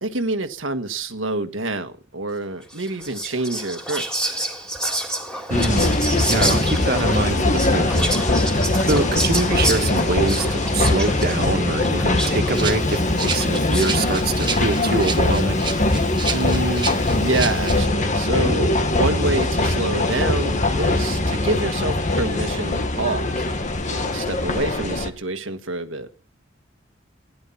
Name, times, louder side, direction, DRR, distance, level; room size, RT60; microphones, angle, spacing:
voice 1, 0.0-4.3 16.3-23.5 23.9-26.3, right 2 dB, 85° right, 1.6 m, -27 dB
Whispering, 2.7-14.1, right 1 dB, 5° left, 3.7 m, -29 dB
sound 1, 5.5-25.1, left 2 dB, 40° left, 1.7 m, -21 dB
voice 2, 5.5-5.9 6.2-8.1 8.9-13.0 13.2-15.6, right 2 dB, 55° right, 1.9 m, -24 dB
Rattle (instrument), 12.5-17.8, right 5 dB, 25° right, 1.3 m, -31 dB
17.0 x 11.5 x 5.8 m
head